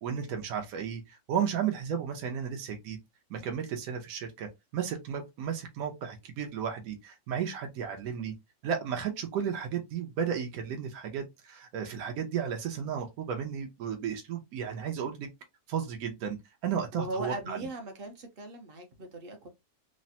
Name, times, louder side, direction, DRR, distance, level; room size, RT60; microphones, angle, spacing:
voice 1, 0.0-3.0 3.3-8.3 8.6-15.3 15.7-16.4 16.6-17.6, right 7 dB, 80° right, 1.1 m, -34 dB
voice 2, 16.9-19.5, right 1 dB, 50° right, 0.7 m, -39 dB
3.2 x 2.1 x 2.7 m
omnidirectional pair, 1.5 m